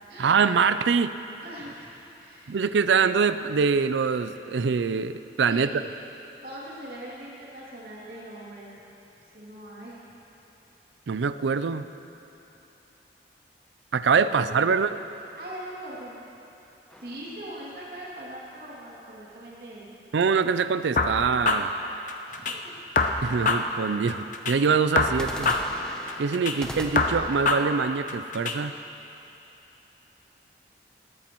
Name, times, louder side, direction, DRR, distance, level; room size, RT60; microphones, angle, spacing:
voice 1, 0.2-1.2 2.5-5.8 11.1-11.8 13.9-15.0 20.1-21.7 23.2-25.5 26.2-28.7, right 5 dB, 90° right, 12 dB, 0.4 m, -24 dB
voice 2, 1.4-1.9 2.2-2.6 5.5-6.0 6.4-8.8 9.2-10.0 14.2-14.7 15.4-16.2 16.9-19.8 22.2-22.8 23.3-23.6, right 1 dB, 55° right, -7 dB, 2.7 m, -41 dB
sound 1, 16.9-18.3 25.1-29.1, equal, 5° left, 0.7 m, -41 dB
sound 2, 21.0-22.6 22.9-24.6 24.9-26.6 26.9-28.6, left 3 dB, 45° left, 0.7 m, -26 dB
20.5 x 13.0 x 3.1 m, 2.9 s
head